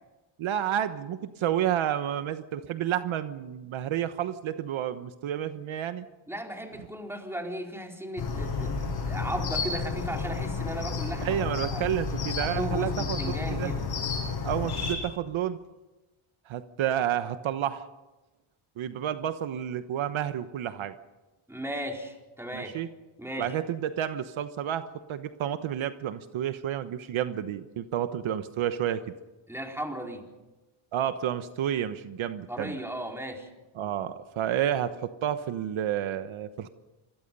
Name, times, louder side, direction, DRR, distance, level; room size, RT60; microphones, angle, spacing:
voice 1, 0.4-6.1 11.2-13.7 14.4-15.6 16.5-17.8 18.8-20.9 22.5-22.9 23.4-29.0 30.9-32.7 33.8-36.7, right 10 dB, 70° right, 10 dB, 1.2 m, -30 dB
voice 2, 6.3-11.8 12.4-13.9 21.5-22.7 23.2-23.6 29.5-30.3 32.5-33.5, equal, 5° right, 1 dB, 4.3 m, -36 dB
sound 1, 8.2-14.9, left 5 dB, 50° left, 7.4 m, -31 dB
27.0 x 22.0 x 5.5 m, 1.1 s
cardioid pair, 105°, 49 cm